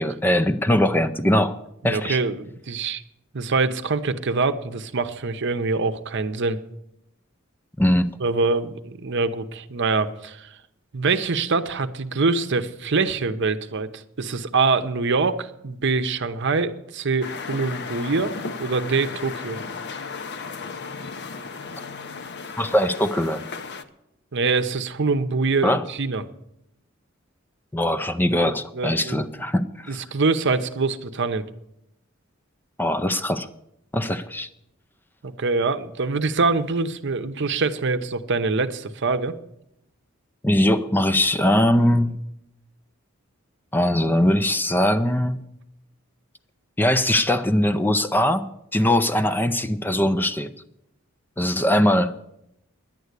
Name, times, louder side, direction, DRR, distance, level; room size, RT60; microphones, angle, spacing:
voice 1, 0.0-1.6 1.8-2.2 7.8-8.1 22.6-23.4 25.6-25.8 27.7-30.0 32.8-33.5 33.9-34.5 40.4-42.1 43.7-45.4 46.8-50.5 51.4-52.1, left 1 dB, 10° left, 10 dB, 0.4 m, -21 dB
voice 2, 1.8-3.0 3.3-6.6 8.2-10.5 10.9-18.3 18.6-19.6 24.3-26.2 28.4-29.3 29.9-31.5 35.2-39.3, right 4 dB, 60° right, 10 dB, 0.8 m, -24 dB
sound 1, 17.2-23.8, left 4 dB, 55° left, 0.8 m, -35 dB
10.5 x 9.4 x 8.1 m, 0.81 s
head